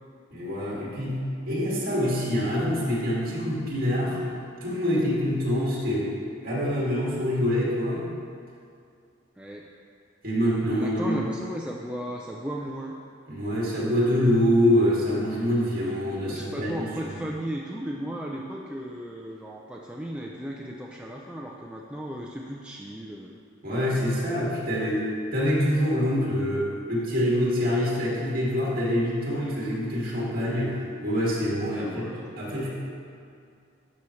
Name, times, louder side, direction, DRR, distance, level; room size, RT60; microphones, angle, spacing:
voice 1, 0.3-4.2 4.6-6.1 6.4-8.1 10.2-11.2 13.3-17.1 23.6-32.1 32.4-32.7, equal, 50° right, -6 dB, 2.3 m, -25 dB
voice 2, 9.4-9.7 10.7-12.9 16.2-23.4 31.7-32.3, equal, 5° right, -2 dB, 0.4 m, -35 dB
12.5 x 6.4 x 3.2 m, 2.3 s
head